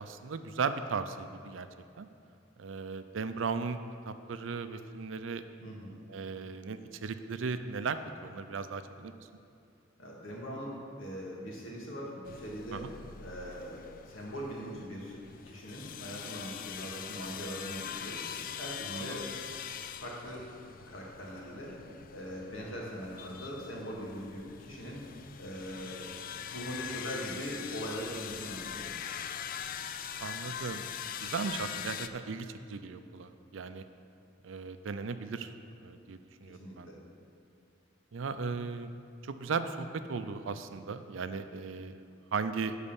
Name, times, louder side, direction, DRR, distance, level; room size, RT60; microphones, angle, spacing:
voice 1, 0.0-1.7 2.0-2.1 2.6-3.8 4.1-5.4 6.1-9.3 12.7-12.9 19.0-19.2 30.2-30.9 31.2-33.8 34.4-36.9 38.1-38.9 39.2-42.0 42.3-42.7, right 5 dB, 70° right, 10 dB, 0.5 m, -37 dB
voice 2, 5.6-6.0 10.0-12.8 13.2-15.2 15.4-19.3 20.0-20.5 20.9-25.0 25.4-26.1 26.5-28.9 36.5-37.0, equal, 80° left, -3 dB, 1.9 m, -41 dB
sound 1, 12.3-32.1, left 8 dB, 45° left, 0.3 m, -42 dB
10.5 x 4.1 x 7.0 m, 2.6 s
head